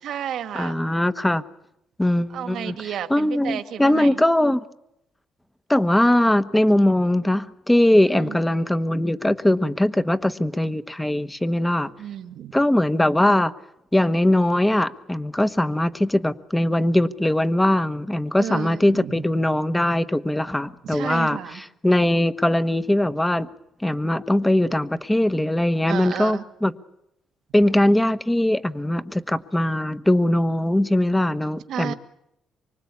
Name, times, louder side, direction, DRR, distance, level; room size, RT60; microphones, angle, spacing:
voice 1, 0.0-0.8 2.3-4.2 8.1-8.4 10.2-10.3 12.0-12.6 18.4-19.2 20.8-21.6 25.9-26.4 31.7-31.9, right 10 dB, 75° right, 8 dB, 2.1 m, -32 dB
voice 2, 0.5-1.4 2.0-2.8 3.1-4.6 5.7-11.9 12.5-13.5 13.9-23.5 23.8-26.7 27.5-31.9, left 1 dB, 10° left, 12 dB, 1.2 m, -21 dB
25.0 x 24.5 x 8.6 m, 0.82 s
cardioid pair, 90°, 0 cm